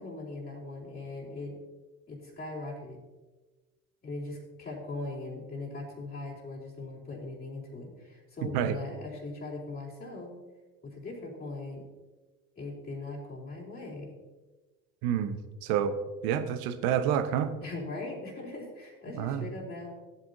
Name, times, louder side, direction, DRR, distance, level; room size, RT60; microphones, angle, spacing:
voice 1, 0.0-1.6 2.1-3.0 4.0-10.3 10.8-11.8 12.6-14.1 17.6-19.9, left 2 dB, 20° left, -5 dB, 3.8 m, -40 dB
voice 2, 15.0-15.9 16.2-17.5 19.2-19.4, right 9 dB, 60° right, 10 dB, 1.0 m, -28 dB
15.5 x 8.2 x 2.7 m, 1.2 s
hypercardioid pair, 65°, 42 cm